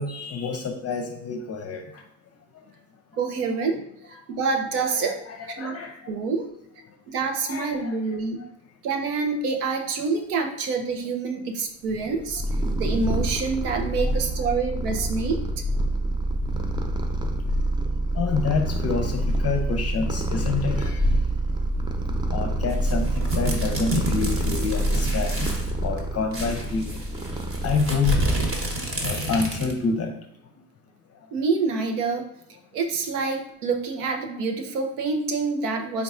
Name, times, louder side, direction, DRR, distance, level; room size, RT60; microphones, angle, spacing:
voice 1, 0.0-1.8 4.9-5.9 7.5-8.0 14.0-14.1 18.2-21.0 22.3-25.3 25.8-27.0 27.6-28.4 29.0-30.1, left 4 dB, 35° left, 4 dB, 0.6 m, -28 dB
voice 2, 3.1-3.8 4.1-5.2 5.6-5.8 6.1-6.5 7.1-8.4 8.8-12.4 12.8-15.4 31.3-32.2 32.7-36.0, right 4 dB, 80° right, 4 dB, 0.8 m, -27 dB
Purr, 12.0-28.8, right 1 dB, 10° right, 0.3 m, -26 dB
sound 1, 22.7-25.7 26.0-26.1 26.3-29.8, equal, 30° right, 1.1 m, -31 dB
4.0 x 3.7 x 2.4 m, 0.73 s
hypercardioid pair, 70°, 44 cm